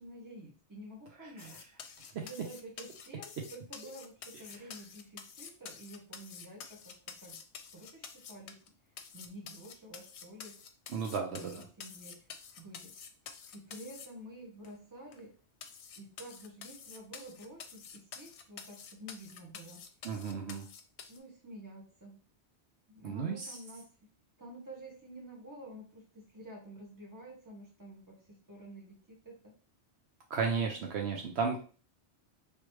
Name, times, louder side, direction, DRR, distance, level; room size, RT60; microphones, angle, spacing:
voice 1, 0.0-1.6 2.2-6.8 7.2-7.4 7.7-8.6 9.1-10.5 11.3-12.3 12.6-12.9 13.5-15.4 16.0-19.8 21.1-22.2 22.9-23.8 24.4-29.0 29.2-29.4, right 1 dB, 15° right, -2 dB, 1.3 m, -50 dB
sound 1, 1.4-8.7 9.0-14.1 14.6-14.7 15.1-15.2 15.6-21.2, left 7 dB, 75° left, 0.8 m, -49 dB
voice 2, 10.9-11.6 20.0-20.6 23.0-23.6 30.3-31.6, right 5 dB, 70° right, 2 dB, 0.9 m, -34 dB
3.3 x 3.0 x 3.1 m, 0.38 s
omnidirectional pair, 1.2 m